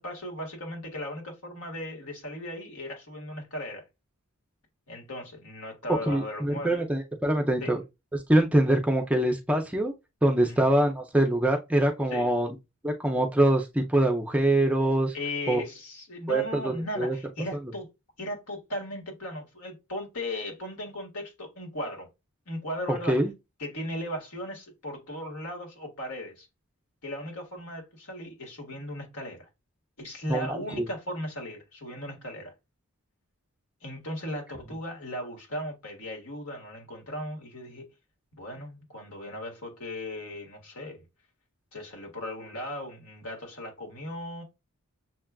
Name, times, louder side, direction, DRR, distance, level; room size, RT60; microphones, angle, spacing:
voice 1, 0.0-3.9 4.9-6.9 7.6-7.8 10.4-10.7 12.1-12.3 15.1-17.9 18.2-22.1 22.5-23.2 23.6-26.5 27.0-29.5 30.0-32.5 33.8-37.9 38.3-41.0 41.7-44.4, left 1 dB, 75° left, 1.6 m, -37 dB
voice 2, 6.1-7.8 8.1-9.9 10.2-12.5 12.8-15.1 15.5-15.6 16.3-17.2 22.9-23.3 30.3-30.9, right 1 dB, 5° right, 0.4 m, -24 dB
6.3 x 2.3 x 2.2 m
head